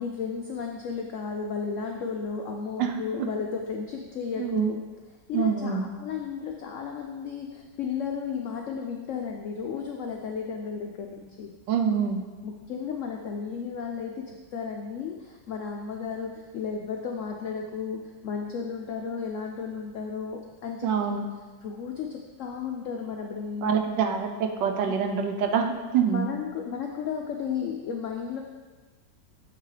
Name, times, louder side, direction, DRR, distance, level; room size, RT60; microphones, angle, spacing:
voice 1, 0.0-4.8 5.3-11.5 12.4-21.1 21.6-23.8 24.8-24.9 26.1-28.4, left 6 dB, 90° left, 2 dB, 0.6 m, -34 dB
voice 2, 4.4-4.7 5.3-5.9 11.7-12.2 20.8-21.2 23.6-26.3, right 7 dB, 85° right, 5 dB, 1.3 m, -25 dB
7.3 x 5.9 x 3.3 m, 1.3 s
omnidirectional pair, 1.9 m